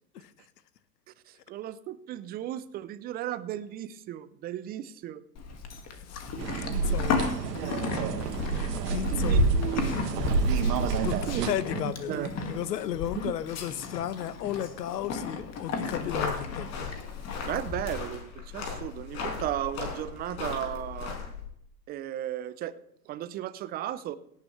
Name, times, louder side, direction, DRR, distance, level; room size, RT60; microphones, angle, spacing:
voice 1, 1.3-5.2 7.6-8.1 8.9-9.9 11.1-12.3 13.2-13.3 17.4-21.2 21.9-22.7 23.1-24.2, right 12 dB, 20° right, 16 dB, 0.4 m, -35 dB
Livestock farm animals working animals, 5.4-17.8, left 5 dB, 30° left, 2.0 m, -35 dB
sound 1, 6.4-11.5, right 4 dB, 70° right, 1.8 m, -28 dB
voice 2, 6.6-7.3 8.9-9.4 11.0-11.2 11.4-16.9, left 11 dB, 75° left, 14 dB, 1.0 m, -34 dB
sound 2, 15.9-21.5, left 5 dB, 55° left, 5.1 m, -37 dB
17.5 x 9.6 x 3.2 m, 0.72 s
hypercardioid pair, 100°, 49 cm